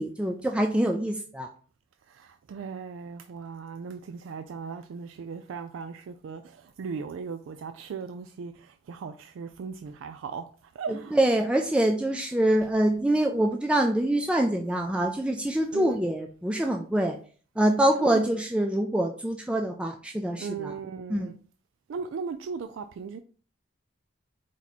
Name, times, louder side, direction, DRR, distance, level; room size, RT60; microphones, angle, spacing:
voice 1, 0.0-1.5 10.9-17.2 17.6-20.7 21.1-21.3, right 1 dB, 5° right, 0.3 m, -25 dB
voice 2, 2.1-10.5 10.8-11.1 15.7-16.0 18.0-18.3 20.4-21.4 21.9-23.2, right 5 dB, 85° right, 0.3 m, -37 dB
4.6 x 2.8 x 4.0 m
head